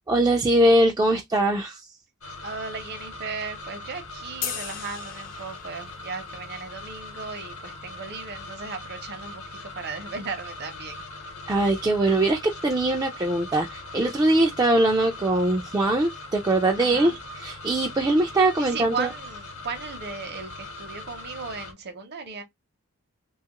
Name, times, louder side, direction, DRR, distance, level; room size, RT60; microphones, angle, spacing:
voice 1, 0.1-1.9 11.5-17.1 17.4-19.1, right 1 dB, 15° right, 0.3 m, -22 dB
sound 1, 2.2-21.7, left 2 dB, 75° left, 0.9 m, -41 dB
voice 2, 2.4-11.0 16.8-17.2 18.6-22.4, right 4 dB, 50° right, 0.7 m, -36 dB
sound 2, 4.4-6.0, left 8 dB, 40° left, 0.5 m, -36 dB
2.8 x 2.3 x 2.9 m
head